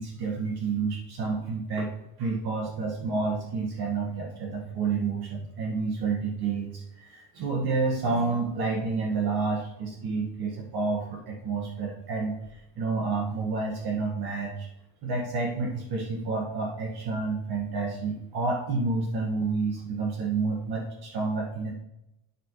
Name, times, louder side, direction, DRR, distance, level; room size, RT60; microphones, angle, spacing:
voice 1, 0.0-1.9 2.2-14.7 15.0-21.7, right 4 dB, 50° right, 0 dB, 1.9 m, -29 dB
9.5 x 9.0 x 3.2 m, 0.86 s
cardioid pair, 155°, 47 cm